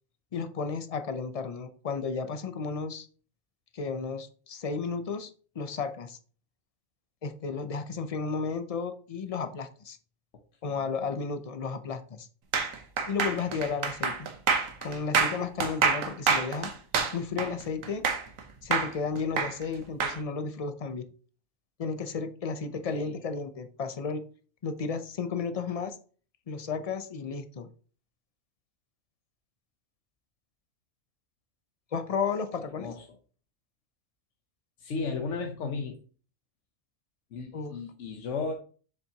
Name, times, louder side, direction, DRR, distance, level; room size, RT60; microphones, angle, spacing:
voice 1, 0.3-3.1 3.7-5.3 5.6-6.2 7.2-10.0 10.6-12.3 13.1-16.7 17.1-18.1 18.6-21.0 21.8-24.2 24.6-26.0 26.5-27.7 31.9-32.9 37.5-37.8, left 5 dB, 40° left, 10 dB, 0.5 m, -33 dB
voice 2, 10.6-11.1 22.9-23.2 32.8-33.1 34.8-36.0 37.3-38.5, left 4 dB, 70° left, 3 dB, 1.2 m, -35 dB
sound 1, 12.5-18.4 18.7-20.2, right 5 dB, 90° right, 1.4 m, -27 dB
7.2 x 6.5 x 2.9 m, 0.41 s
omnidirectional pair, 1.3 m